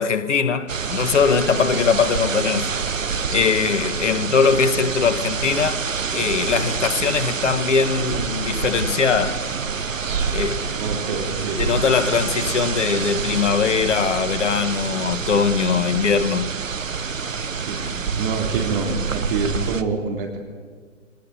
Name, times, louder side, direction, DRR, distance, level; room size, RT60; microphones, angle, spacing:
voice 1, 0.0-2.7 3.3-5.9 6.1-9.4 10.3-10.7 11.6-16.4, left 6 dB, 65° left, 1.7 m, -21 dB
sound 1, 0.7-19.8, right 5 dB, 75° right, 1.4 m, -27 dB
voice 2, 10.8-11.6 17.5-20.4, right 4 dB, 40° right, 3.6 m, -27 dB
26.0 x 19.0 x 8.4 m
figure-of-eight pair, 125°, 39 cm